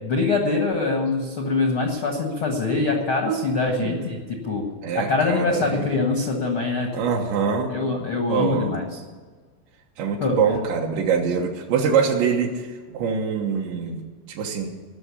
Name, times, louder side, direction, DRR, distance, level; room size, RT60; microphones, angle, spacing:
voice 1, 0.0-4.6 4.9-6.9 7.7-9.0 10.2-10.4, left 3 dB, 80° left, 2 dB, 1.1 m, -24 dB
voice 2, 4.8-5.9 6.9-7.7 8.3-8.7 10.0-14.7, right 6 dB, 80° right, 0 dB, 3.5 m, -24 dB
18.5 x 6.4 x 9.7 m, 1.5 s
omnidirectional pair, 5.0 m